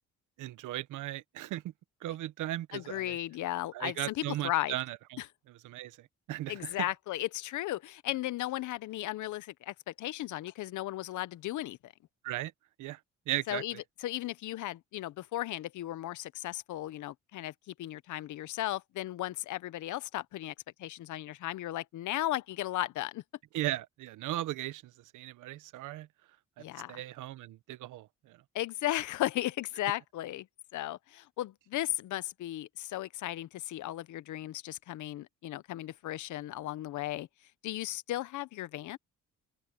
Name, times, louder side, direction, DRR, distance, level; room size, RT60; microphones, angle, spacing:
voice 1, 0.4-1.6 2.0-3.2 3.7-5.2 5.6-6.7 12.2-12.5 12.8-13.0 13.3-13.8 23.5-26.1 26.6-28.4, right 15 dB, 85° right, 1.1 m, -37 dB
voice 2, 2.7-4.8 5.2-5.3 6.5-11.9 13.5-23.2 26.6-27.0 28.5-30.5 30.7-37.3 37.6-39.0, left 15 dB, 75° left, 0.8 m, -36 dB
open air
cardioid pair, 90°, 30 cm